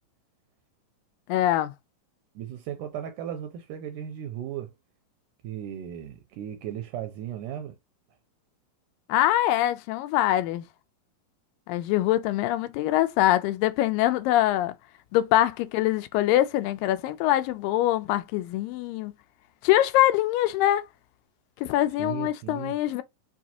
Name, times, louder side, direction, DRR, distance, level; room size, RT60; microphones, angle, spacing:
voice 1, 1.3-1.7 9.1-10.7 11.7-14.7 15.1-19.1 19.6-20.9 21.6-23.0, left 14 dB, 85° left, 2.2 m, -23 dB
voice 2, 2.4-4.7 5.4-7.7 22.0-22.7, right 10 dB, 80° right, 2.0 m, -36 dB
5.8 x 2.4 x 2.8 m
omnidirectional pair, 3.9 m